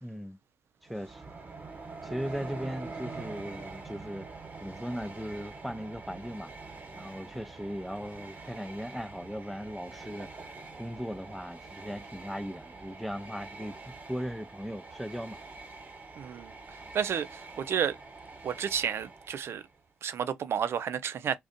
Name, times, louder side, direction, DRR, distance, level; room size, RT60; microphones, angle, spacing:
voice 1, 0.0-0.4 0.8-1.2 2.0-4.3 4.6-6.5 6.9-10.3 10.7-15.4, equal, ahead, 0.5 m, -38 dB
Train, 0.8-19.8, right 3 dB, 35° right, 1.1 m, -45 dB
voice 2, 16.2-16.5 16.9-18.0 18.4-19.6 20.0-21.4, right 8 dB, 60° right, 0.3 m, -31 dB
2.4 x 2.2 x 2.5 m
hypercardioid pair, 40°, 5 cm